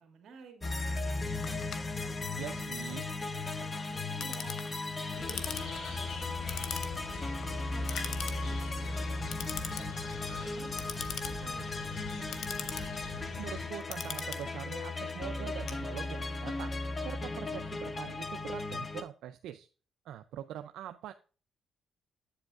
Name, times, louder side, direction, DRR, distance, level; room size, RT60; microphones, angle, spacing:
voice 1, 0.0-2.2 2.5-2.9 3.3-7.3 7.7-9.9 10.2-13.0, right 5 dB, 60° right, 3 dB, 1.9 m, -55 dB
sound 1, 0.6-19.0, left 3 dB, 30° left, 0.8 m, -36 dB
Clock, 1.4-16.4, left 7 dB, 60° left, 0.8 m, -44 dB
voice 2, 2.4-3.0 13.4-19.7 20.1-21.1, right 11 dB, 85° right, 9 dB, 0.4 m, -43 dB
sound 2, 5.1-13.7, left 2 dB, 80° left, 2.2 m, -44 dB
8.3 x 7.8 x 2.4 m, 0.37 s
cardioid pair, 90°, 0 cm